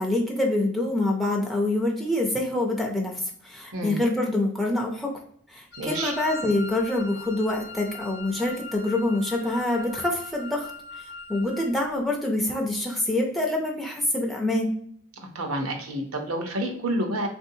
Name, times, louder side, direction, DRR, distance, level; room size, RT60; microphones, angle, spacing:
voice 1, 0.0-5.1 5.5-10.7 11.3-14.7, left 1 dB, ahead, -2 dB, 0.4 m, -26 dB
Wind instrument woodwind instrument, 5.7-11.8, left 2 dB, 50° left, 0.6 m, -40 dB
voice 2, 5.8-6.1 15.3-17.3, right 1 dB, 75° right, 4 dB, 0.8 m, -29 dB
3.7 x 2.6 x 2.7 m, 0.63 s
head